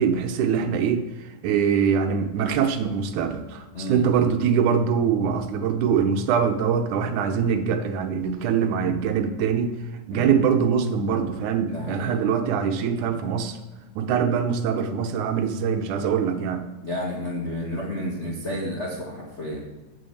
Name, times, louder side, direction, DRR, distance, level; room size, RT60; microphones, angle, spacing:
voice 1, 0.0-9.7 10.1-13.6 14.0-16.6, right 7 dB, 75° right, 7 dB, 2.2 m, -23 dB
voice 2, 3.7-4.3 10.1-10.4 11.7-12.1 16.8-19.6, left 1 dB, 50° left, -3 dB, 0.8 m, -31 dB
8.1 x 7.0 x 7.0 m, 1.2 s
omnidirectional pair, 3.6 m